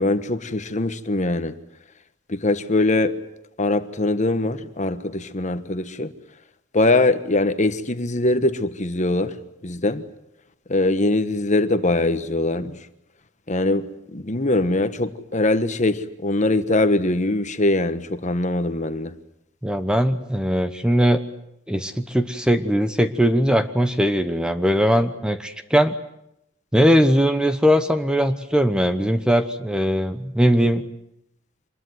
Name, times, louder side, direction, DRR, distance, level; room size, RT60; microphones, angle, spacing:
voice 1, 0.0-1.6 2.3-3.2 3.6-6.1 6.7-9.4 9.6-10.0 10.7-12.8 13.5-13.9 14.1-19.1, left 2 dB, 35° left, 1.3 m, -22 dB
voice 2, 19.6-21.2 21.7-25.9 26.7-30.8, equal, 5° right, 1.0 m, -20 dB
26.0 x 21.0 x 9.4 m
head